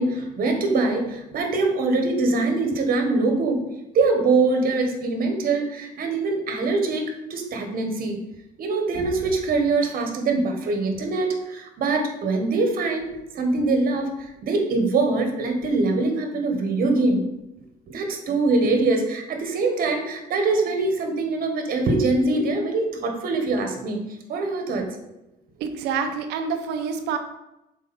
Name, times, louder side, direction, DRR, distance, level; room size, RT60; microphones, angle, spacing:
voice 1, 0.0-3.6 3.9-8.2 8.6-13.1 13.3-17.2 17.9-24.0 24.3-24.9, right 3 dB, 60° right, 4 dB, 1.5 m, -23 dB
voice 2, 25.6-27.2, right 6 dB, 90° right, 7 dB, 0.7 m, -27 dB
6.4 x 4.6 x 4.3 m, 0.90 s
cardioid pair, 110°, 17 cm